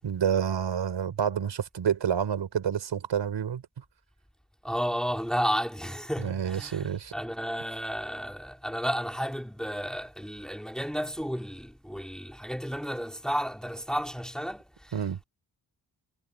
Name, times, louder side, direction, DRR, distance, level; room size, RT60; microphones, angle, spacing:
voice 1, 0.0-3.8 6.2-7.1 14.9-15.2, right 8 dB, 75° right, 6.4 m, -29 dB
voice 2, 4.6-14.9, equal, ahead, 3.3 m, -32 dB
wide cardioid pair, 115°, 43 cm